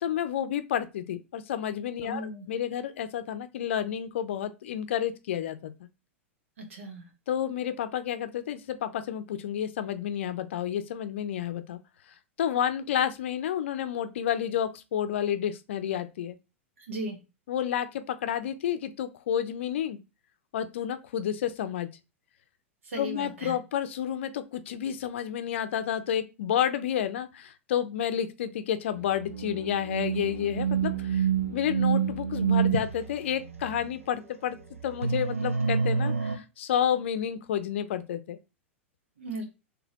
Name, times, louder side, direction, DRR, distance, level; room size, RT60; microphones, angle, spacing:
voice 1, 0.0-5.7 7.3-11.8 12.4-16.4 17.5-20.0 20.5-21.9 23.0-34.6 34.8-38.4, left 9 dB, 65° left, 0.5 m, -30 dB
voice 2, 2.0-2.5 6.6-7.1 16.9-17.2 22.8-23.5 39.2-39.4, right 1 dB, 70° right, 1.4 m, -36 dB
sound 1, 29.3-32.8 35.0-36.4, right 6 dB, 90° right, 0.7 m, -27 dB
3.9 x 3.3 x 2.9 m
figure-of-eight pair, 100°, 7 cm